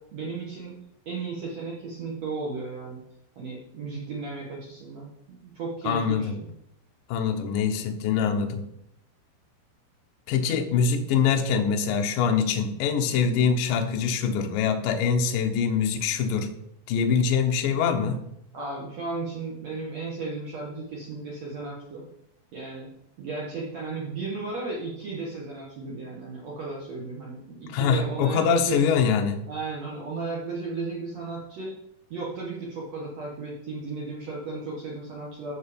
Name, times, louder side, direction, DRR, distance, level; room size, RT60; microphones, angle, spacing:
voice 1, 0.1-0.7 1.0-3.0 3.3-6.5 18.5-22.0 22.5-22.9 23.2-29.2 29.5-31.7 32.1-35.6, right 3 dB, 70° right, -4 dB, 1.6 m, -35 dB
voice 2, 5.8-6.3 7.1-8.6 10.3-16.5 16.9-18.2 27.7-29.4, left 6 dB, 80° left, 4 dB, 2.0 m, -24 dB
13.5 x 5.0 x 5.2 m, 0.76 s
omnidirectional pair, 5.4 m